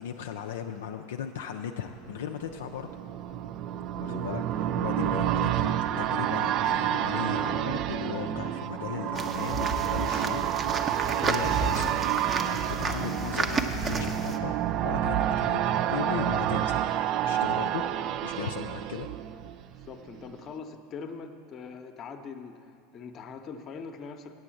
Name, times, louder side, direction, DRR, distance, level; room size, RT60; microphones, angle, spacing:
voice 1, 0.0-2.9 3.9-12.1 12.4-14.5 14.8-16.8 17.2-19.1, left 8 dB, 75° left, 4 dB, 0.3 m, -37 dB
sound 1, 2.1-19.9 20.2-20.3, right 11 dB, 50° right, 0.3 m, -29 dB
sound 2, 9.2-14.4, right 3 dB, 30° right, 0.7 m, -32 dB
voice 2, 19.8-24.3, left 5 dB, 40° left, 7 dB, 0.7 m, -42 dB
8.3 x 7.7 x 7.5 m, 2.5 s
hypercardioid pair, 80°, 0 cm